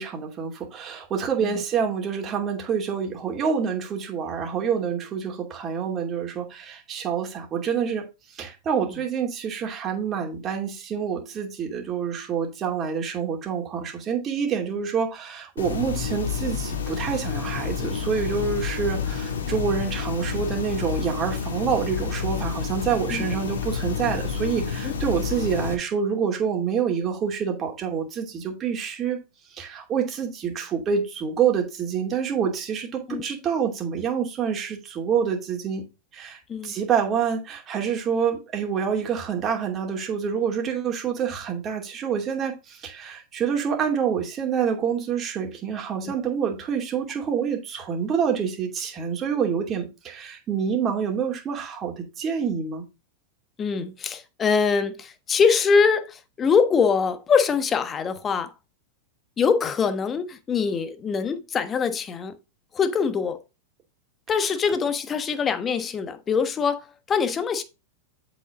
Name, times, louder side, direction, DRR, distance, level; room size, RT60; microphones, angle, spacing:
voice 1, 0.0-8.1 8.4-29.2 29.6-35.8 36.1-52.8, right 7 dB, 30° right, 2.6 m, -27 dB
sound 1, 15.6-25.7, left 6 dB, 80° left, 1.5 m, -29 dB
voice 2, 53.6-58.5 59.4-62.4 62.7-63.4 64.3-67.6, left 5 dB, 25° left, 1.1 m, -23 dB
7.8 x 5.6 x 3.7 m
hypercardioid pair, 100°, 0 cm